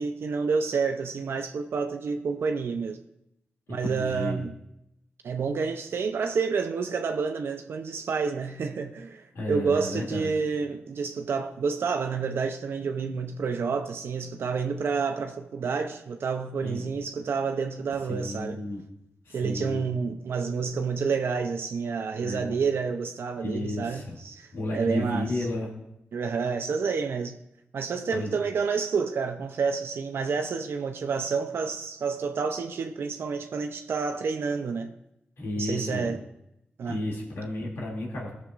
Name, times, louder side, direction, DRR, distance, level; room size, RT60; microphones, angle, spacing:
voice 1, 0.0-3.0 3.7-4.5 5.2-18.6 19.3-25.5 26.1-27.4 27.7-34.9 35.6-36.2 36.8-37.0, right 5 dB, 75° right, 0.6 m, -29 dB
voice 2, 3.7-4.4 9.3-10.3 16.6-16.8 18.0-18.8 19.2-19.8 22.2-22.6 23.4-24.2 24.5-25.7 28.1-28.4 35.4-36.2 36.8-38.3, left 1 dB, 85° left, 2.6 m, -33 dB
18.0 x 6.5 x 2.5 m
cardioid pair, 70°, 4 cm